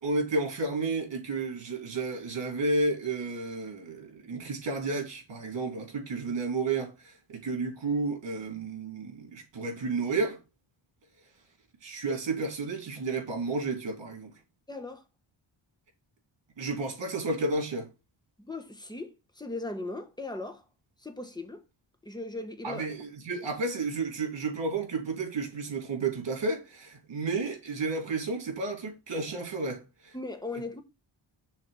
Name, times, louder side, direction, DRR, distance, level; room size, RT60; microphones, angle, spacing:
voice 1, 0.0-10.4 11.8-14.3 16.6-17.9 22.6-30.1, right 3 dB, 60° right, 2.8 m, -32 dB
voice 2, 14.7-15.0 18.4-20.6 21.0-21.6 22.0-22.9 30.1-30.8, left 2 dB, 10° left, 1.1 m, -38 dB
6.5 x 3.5 x 5.6 m
wide cardioid pair, 110°, 48 cm